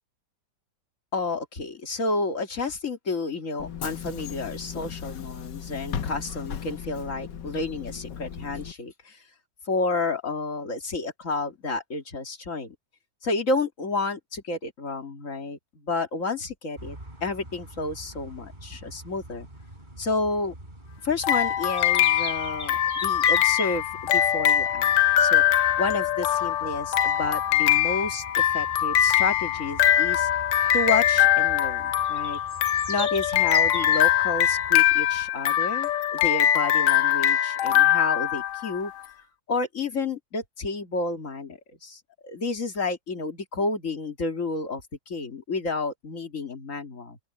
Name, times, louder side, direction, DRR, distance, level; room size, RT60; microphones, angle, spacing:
voice 1, 1.1-9.2 9.7-12.7 13.2-17.0 17.2-19.5 20.0-20.5 21.0-24.9 25.2-30.3 30.7-32.4 32.9-38.9 39.5-47.2, left 3 dB, 45° left, 2.6 m, -30 dB
Bus / Engine, 3.6-8.7, left 8 dB, 85° left, 1.8 m, -36 dB
sound 1, 16.8-35.1, equal, 25° right, 5.1 m, -42 dB
sound 2, 21.2-38.9, left 11 dB, 65° left, 0.8 m, -22 dB
open air
omnidirectional pair, 1.8 m